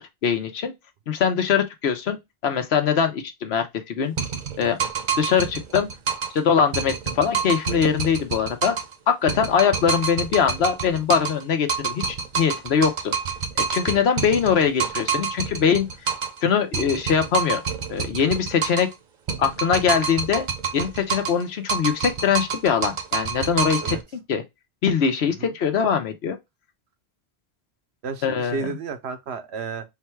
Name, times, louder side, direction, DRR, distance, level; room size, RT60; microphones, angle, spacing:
voice 1, 0.2-0.7 1.1-4.1 4.6-4.8 5.2-5.9 6.3-8.8 9.1-13.1 13.6-15.9 16.4-17.6 17.9-18.9 19.4-20.5 20.7-24.0 24.3-24.4 24.8-26.4 28.2-28.7, left 7 dB, 80° left, 1.1 m, -22 dB
sound 1, 4.2-6.4 6.7-8.9 9.3-11.4 11.7-16.4 16.7-18.9 19.3-21.4 21.7-24.0, right 6 dB, 55° right, 0.8 m, -27 dB
voice 2, 28.0-29.8, right 5 dB, 85° right, 1.0 m, -32 dB
3.9 x 2.3 x 4.4 m
omnidirectional pair, 1.1 m